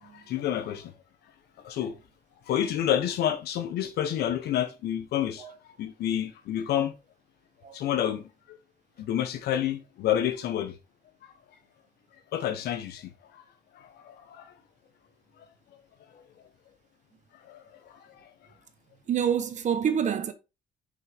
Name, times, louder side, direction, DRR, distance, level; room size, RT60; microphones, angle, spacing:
voice 1, 0.0-0.9 1.6-2.0 2.5-6.9 7.7-8.3 9.0-10.8 11.2-11.3 12.3-13.4 13.7-14.5 16.1-16.2 17.4-18.3, left 10 dB, 70° left, 1.3 m, -29 dB
voice 2, 19.1-20.3, right 8 dB, 45° right, 1.2 m, -27 dB
6.5 x 5.7 x 3.6 m
cardioid pair, 110°, 17 cm